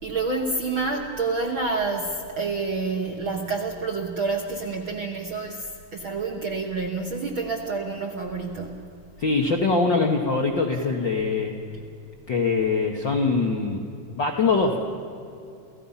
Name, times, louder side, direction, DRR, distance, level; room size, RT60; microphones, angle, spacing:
voice 1, 0.0-8.8, right 3 dB, 55° right, 1 dB, 1.4 m, -28 dB
voice 2, 9.2-11.5 12.3-13.8 14.1-14.8, left 4 dB, 60° left, 1 dB, 1.2 m, -23 dB
29.5 x 15.5 x 5.7 m, 2.6 s
omnidirectional pair, 3.9 m